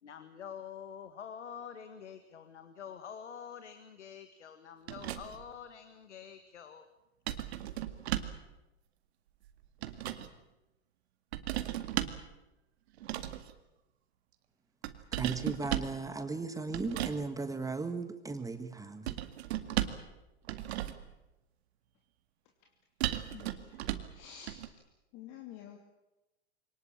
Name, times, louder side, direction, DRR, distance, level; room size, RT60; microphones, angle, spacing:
voice 1, 0.0-6.9, left 8 dB, 85° left, 1.9 m, -47 dB
sound 1, 4.9-5.5 7.3-8.5 9.5-10.3 11.3-12.3 13.0-13.5 14.8-16.0 16.7-17.2 19.1-20.1 20.4-21.1 23.0-24.2 24.5-24.7, right 13 dB, 65° right, 2.0 m, -36 dB
voice 2, 15.1-19.2, right 3 dB, 10° right, 1.5 m, -37 dB
voice 3, 23.3-23.8 24.1-24.6 25.1-25.8, left 9 dB, 45° left, 2.9 m, -49 dB
23.5 x 19.0 x 8.9 m
hypercardioid pair, 115°, 34 cm